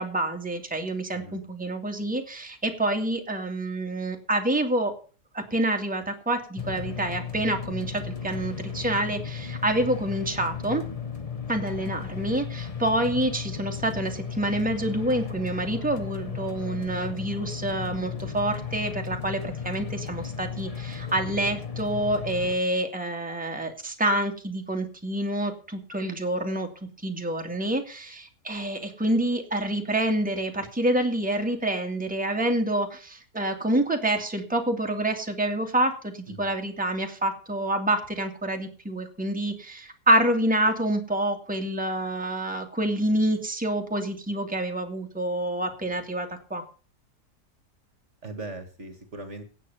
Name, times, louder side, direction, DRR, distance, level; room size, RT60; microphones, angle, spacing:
voice 1, 0.0-4.9 5.3-10.8 11.5-26.7 27.0-46.6, right 1 dB, 5° right, 3 dB, 2.1 m, -27 dB
sound 1, 6.6-22.6, left 6 dB, 25° left, 0.9 m, -35 dB
voice 2, 48.2-49.4, right 2 dB, 45° right, 8 dB, 2.0 m, -39 dB
17.5 x 7.2 x 6.9 m, 0.38 s
omnidirectional pair, 1.7 m